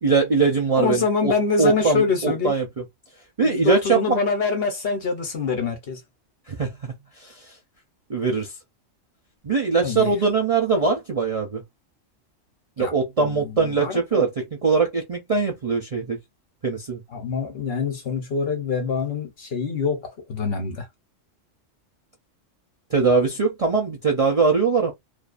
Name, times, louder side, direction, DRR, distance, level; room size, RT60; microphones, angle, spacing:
voice 1, 0.0-1.3 1.6-2.8 3.4-4.2 6.5-6.9 7.2-7.3 8.1-8.5 9.4-11.6 12.8-16.2 16.6-17.0 22.9-24.9, right 4 dB, 45° right, 0.5 m, -22 dB
voice 2, 0.8-2.5 3.4-6.0 9.8-10.1 12.8-12.9 13.2-14.2 17.1-20.9, left 5 dB, 55° left, 0.9 m, -25 dB
2.5 x 2.3 x 2.4 m
omnidirectional pair, 1.3 m